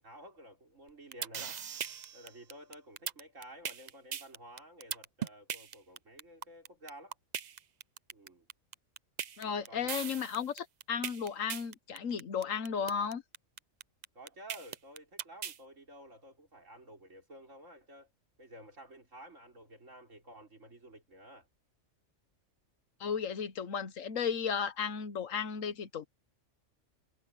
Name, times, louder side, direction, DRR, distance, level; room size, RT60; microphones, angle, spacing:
voice 1, 0.0-1.6 2.1-7.2 8.1-8.5 9.4-10.0 14.1-18.1 18.4-21.5, right 1 dB, 70° right, 5.1 m, -52 dB
sound 1, 0.9-15.6, right 8 dB, 50° right, 0.5 m, -39 dB
voice 2, 9.4-13.2 23.0-26.1, left 7 dB, 80° left, 1.4 m, -34 dB
omnidirectional pair, 1.3 m